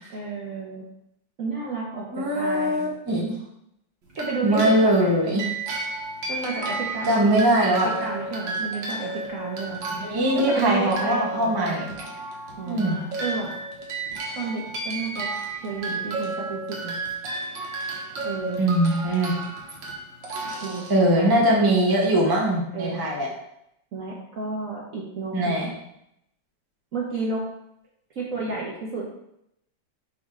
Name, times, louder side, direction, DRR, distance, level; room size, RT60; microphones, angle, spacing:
voice 1, 0.1-0.8 1.4-2.8 4.2-5.2 6.3-7.2 7.6-9.8 10.3-11.8 12.6-13.5 14.4-15.3 15.6-17.0 18.2-18.7 20.6-21.3 22.7-23.1 23.9-25.7 26.9-27.4 28.2-29.1, right 3 dB, 50° right, -4 dB, 1.1 m, -31 dB
voice 2, 2.1-3.3 4.4-5.4 7.0-8.0 10.0-11.8 12.7-13.0 18.6-19.3 20.9-23.3 25.3-25.7, right 1 dB, 15° right, -2 dB, 0.8 m, -21 dB
sound 1, 4.1-21.5, right 3 dB, 70° right, 1.8 m, -33 dB
5.2 x 5.1 x 3.6 m, 0.79 s
omnidirectional pair, 2.2 m